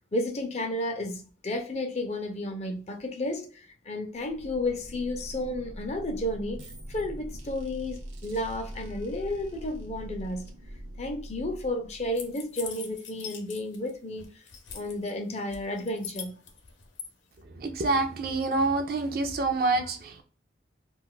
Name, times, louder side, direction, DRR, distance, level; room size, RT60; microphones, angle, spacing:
voice 1, 0.1-6.6 6.9-10.5 11.0-14.2 14.7-16.3, left 1 dB, 35° left, 0.5 m, -32 dB
sound 1, 4.1-12.6, equal, 90° right, 0.8 m, -42 dB
sound 2, 12.2-13.9 14.2-15.1 15.5-17.1, left 7 dB, 85° left, 0.7 m, -41 dB
voice 2, 17.4-20.2, right 3 dB, 50° right, 0.4 m, -27 dB
2.4 x 2.3 x 3.7 m
head